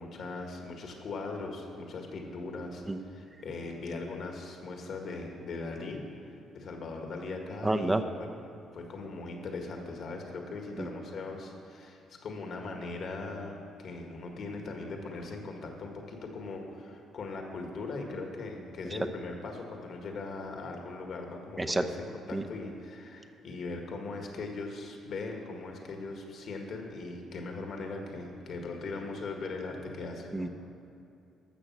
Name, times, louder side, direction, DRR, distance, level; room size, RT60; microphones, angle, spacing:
voice 1, 0.0-6.0 6.5-8.3 8.7-30.5, left 3 dB, 60° left, 2 dB, 1.8 m, -39 dB
voice 2, 7.6-8.0 10.8-10.9 21.6-21.8 22.3-22.4 30.3-30.5, right 2 dB, 20° right, 7 dB, 0.8 m, -28 dB
13.0 x 6.9 x 6.1 m, 2.6 s
supercardioid pair, 70°, 0 cm